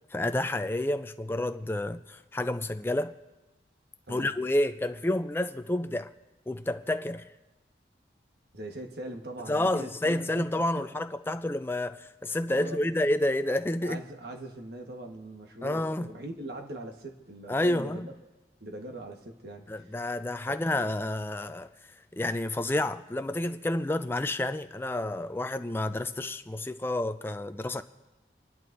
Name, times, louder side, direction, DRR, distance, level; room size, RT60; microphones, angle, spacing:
voice 1, 0.1-3.1 4.1-6.1 6.5-7.3 9.5-14.0 15.6-16.1 17.5-18.1 19.7-21.7 22.1-27.8, left 1 dB, 15° left, 0.4 m, -29 dB
voice 2, 8.5-10.5 10.7-10.8 12.6-12.8 13.8-18.1 18.6-19.7 20.5-20.6, right 1 dB, 65° right, 1.3 m, -41 dB
29.5 x 11.0 x 2.6 m
head